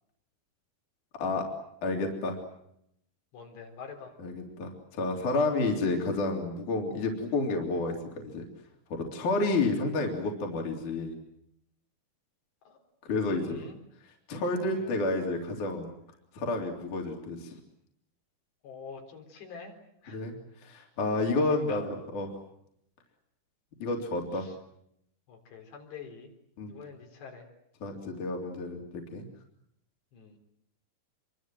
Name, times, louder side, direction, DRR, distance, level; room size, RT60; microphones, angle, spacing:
voice 1, 1.8-2.4 4.2-8.4 8.9-11.1 13.0-13.6 14.3-16.0 16.3-17.5 20.1-20.3 20.6-22.3 23.8-24.5 26.6-26.7 27.8-29.2, left 2 dB, 45° left, 2 dB, 4.4 m, -30 dB
voice 2, 3.3-4.2 12.7-12.8 13.1-13.8 14.8-15.0 18.6-19.8 20.0-20.3 21.5-21.9 24.3-24.6 25.3-26.3 26.7-27.5 30.1-30.4, left 5 dB, 65° left, 2 dB, 6.0 m, -45 dB
26.5 x 24.5 x 7.8 m, 0.75 s
omnidirectional pair, 5.3 m